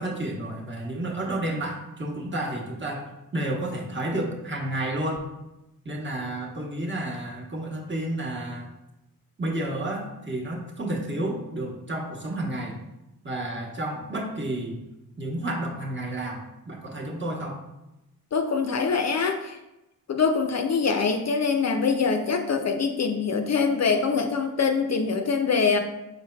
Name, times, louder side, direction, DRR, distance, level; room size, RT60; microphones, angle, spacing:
voice 1, 0.0-3.0 3.3-5.3 5.8-8.7 9.4-12.8 13.2-14.8 15.2-17.6, right 1 dB, 30° right, -1 dB, 1.0 m, -31 dB
voice 2, 18.3-19.6 20.1-25.8, left 5 dB, 45° left, 5 dB, 0.4 m, -24 dB
4.5 x 3.8 x 2.2 m, 0.95 s
cardioid pair, 50°, 37 cm